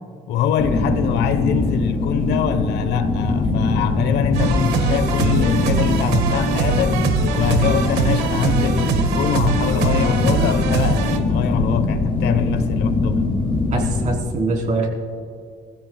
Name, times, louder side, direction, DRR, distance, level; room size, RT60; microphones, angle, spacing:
voice 1, 0.3-7.1 7.3-13.4, left 8 dB, 80° left, 1.1 m, -23 dB
sound 1, 0.6-14.2, left 3 dB, 30° left, 2.2 m, -22 dB
sound 2, 4.3-11.2, right 6 dB, 75° right, 1.6 m, -22 dB
voice 2, 13.7-14.9, right 3 dB, 45° right, 3.4 m, -23 dB
26.0 x 15.5 x 2.3 m
cardioid pair, 110°, 17 cm